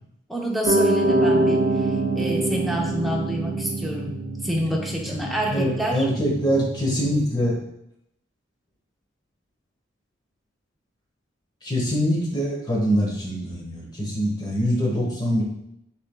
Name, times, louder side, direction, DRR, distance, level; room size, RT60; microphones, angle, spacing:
voice 1, 0.3-6.1, equal, ahead, -1 dB, 0.6 m, -28 dB
Piano, 0.7-7.2, right 2 dB, 45° right, 0.5 m, -25 dB
voice 2, 5.5-7.6 11.6-15.4, equal, 20° left, -2 dB, 1.0 m, -24 dB
6.1 x 3.4 x 2.2 m, 0.79 s
head